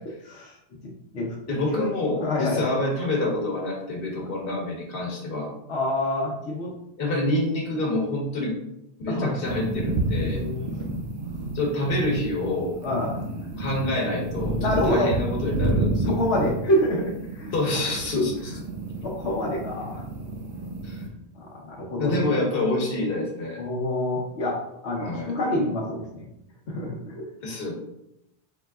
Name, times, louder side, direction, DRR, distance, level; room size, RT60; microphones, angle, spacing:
voice 1, 1.5-5.5 7.0-8.6 9.0-10.4 11.5-12.8 13.6-16.2 17.5-18.5 20.8-21.0 22.0-23.6 25.0-25.3 27.4-27.7, left 1 dB, 60° left, -2 dB, 1.2 m, -27 dB
voice 2, 2.2-2.6 5.7-6.7 9.1-9.4 10.2-10.8 12.8-13.2 14.6-15.1 16.0-17.5 19.0-20.0 21.3-22.3 23.6-24.6 24.8-26.2 26.7-27.2, left 1 dB, 80° left, -3 dB, 1.0 m, -27 dB
sound 1, 9.4-21.1, right 2 dB, 85° right, 1.0 m, -30 dB
3.9 x 3.7 x 2.3 m, 0.82 s
omnidirectional pair, 1.1 m